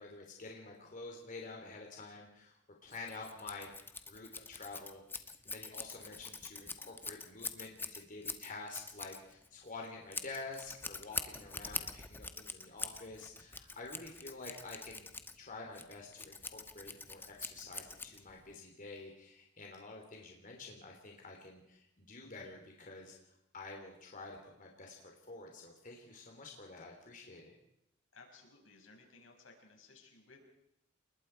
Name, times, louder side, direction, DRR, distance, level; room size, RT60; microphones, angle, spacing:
voice 1, 0.0-15.0 15.4-27.6, left 3 dB, 45° left, 0 dB, 3.3 m, -49 dB
Scissors, 2.9-18.5, left 3 dB, 10° left, 1.1 m, -45 dB
voice 2, 28.1-30.4, left 3 dB, 85° left, 1 dB, 5.9 m, -59 dB
30.0 x 20.0 x 4.6 m, 0.79 s
head